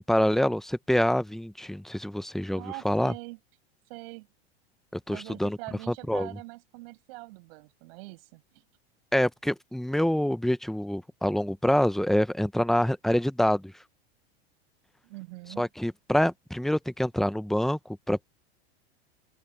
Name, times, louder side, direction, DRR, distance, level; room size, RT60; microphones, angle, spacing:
voice 1, 0.0-3.1 4.9-5.6 5.9-6.3 9.1-13.7 15.6-18.3, equal, ahead, 0.9 m, -26 dB
voice 2, 2.5-3.4 3.9-4.3 5.1-8.6 15.0-15.6, right 25 dB, 60° right, 7.8 m, -43 dB
open air
hypercardioid pair, 110°, 32 cm